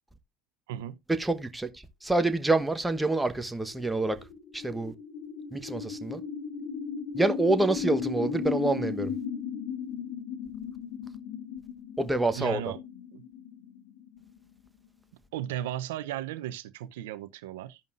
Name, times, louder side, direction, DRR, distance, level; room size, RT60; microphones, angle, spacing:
voice 1, 1.1-1.7 2.0-4.2 4.5-4.9 5.5-6.2 7.1-9.1 12.0-12.6, right 2 dB, 5° right, 1.1 m, -27 dB
sound 1, 3.4-14.9, left 6 dB, 70° left, 1.7 m, -36 dB
voice 2, 12.3-12.8 13.1-13.2 15.3-17.8, right 11 dB, 85° right, 0.6 m, -35 dB
15.0 x 5.3 x 2.5 m
supercardioid pair, 100°, 0 cm